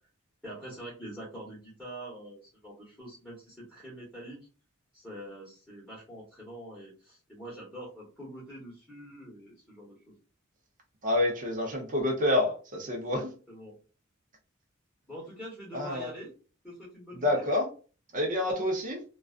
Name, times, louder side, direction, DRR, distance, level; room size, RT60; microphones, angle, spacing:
voice 1, 0.4-4.4 4.9-10.1 12.9-13.2 13.5-13.7 15.1-16.3 16.6-17.5, right 1 dB, ahead, -8 dB, 1.1 m, -45 dB
voice 2, 11.0-13.3 15.7-16.1 17.1-17.7 18.1-19.0, left 1 dB, 40° right, 1 dB, 0.6 m, -28 dB
2.4 x 2.3 x 2.4 m, 0.36 s
head